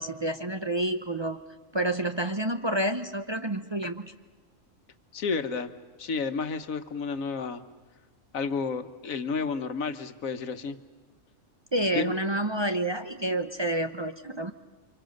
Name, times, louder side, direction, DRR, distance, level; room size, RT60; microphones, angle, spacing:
voice 1, 0.0-1.4 1.7-4.1 11.7-14.5, right 1 dB, 25° right, 7 dB, 0.7 m, -29 dB
voice 2, 5.1-5.7 6.0-7.6 8.3-10.8 11.9-12.1, left 4 dB, 90° left, 9 dB, 1.6 m, -31 dB
29.5 x 25.5 x 6.5 m, 1.4 s
omnidirectional pair, 1.4 m